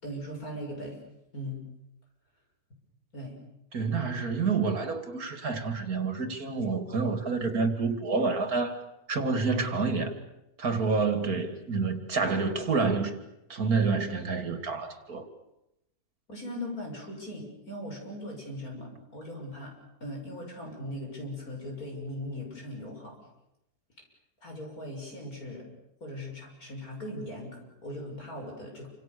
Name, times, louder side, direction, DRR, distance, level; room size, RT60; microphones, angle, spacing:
voice 1, 0.0-1.0 1.3-1.6 3.1-3.4 16.3-19.7 20.0-23.2 24.4-25.7 26.0-28.9, left 1 dB, 75° left, 1 dB, 7.6 m, -39 dB
voice 2, 3.7-8.8 9.1-10.1 10.6-13.2 13.5-15.3, right 4 dB, 75° right, 8 dB, 3.0 m, -28 dB
28.0 x 26.5 x 6.9 m, 0.85 s
omnidirectional pair, 1.6 m